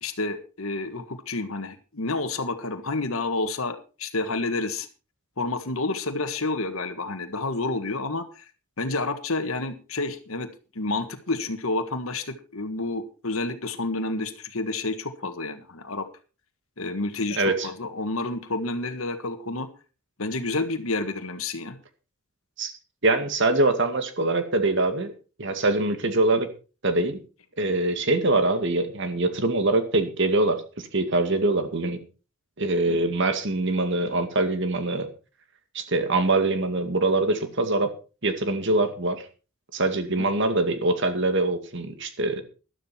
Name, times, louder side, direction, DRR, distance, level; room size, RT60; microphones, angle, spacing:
voice 1, 0.0-4.9 5.4-8.5 8.8-10.5 10.7-16.1 16.8-19.7 20.2-21.8 32.9-33.0 40.2-40.3, left 2 dB, 75° left, 8 dB, 1.6 m, -29 dB
voice 2, 17.4-17.7 22.6-22.7 23.0-25.1 25.4-26.5 26.8-27.2 27.6-32.0 32.6-35.1 35.7-37.9 38.2-39.2 39.7-42.4, right 2 dB, 60° right, 8 dB, 2.1 m, -23 dB
13.0 x 12.0 x 4.4 m, 0.35 s
head